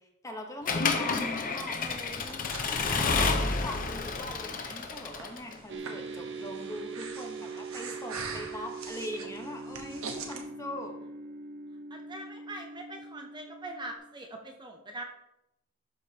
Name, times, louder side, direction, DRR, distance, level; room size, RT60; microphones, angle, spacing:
voice 1, 0.0-10.9, left 1 dB, 15° left, 2 dB, 1.1 m, -42 dB
Accelerating revving vroom / Mechanisms, 0.7-5.6, left 4 dB, 40° left, 0.8 m, -30 dB
Breathing, 1.9-10.4, right 4 dB, 90° right, 1.1 m, -44 dB
sound 1, 5.7-14.0, right 4 dB, 60° right, 0.8 m, -42 dB
voice 2, 11.9-15.0, right 2 dB, 20° right, 3 dB, 0.7 m, -42 dB
12.0 x 4.9 x 2.9 m, 0.86 s
head